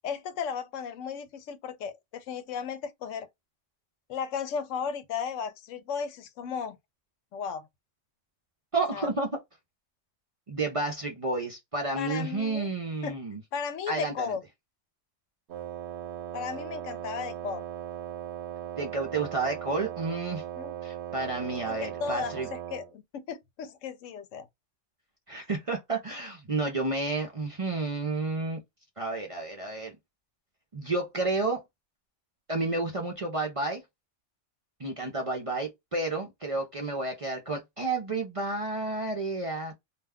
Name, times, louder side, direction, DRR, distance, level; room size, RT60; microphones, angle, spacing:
voice 1, 0.0-3.3 4.1-6.8 7.3-7.7 8.9-9.1 12.0-12.7 13.0-13.2 13.5-14.4 16.3-17.6 20.6-20.7 21.7-24.5, left 6 dB, 90° left, 1.0 m, -35 dB
voice 2, 8.7-9.3 10.5-13.4 13.9-14.4 18.8-20.4 20.8-22.5 25.3-28.6 29.0-30.0 30.7-31.6 32.5-33.8 34.8-39.7, right 3 dB, 40° right, 0.5 m, -31 dB
Wind instrument woodwind instrument, 15.5-22.9, right 11 dB, 65° right, 0.8 m, -38 dB
2.4 x 2.2 x 3.4 m
omnidirectional pair, 1.3 m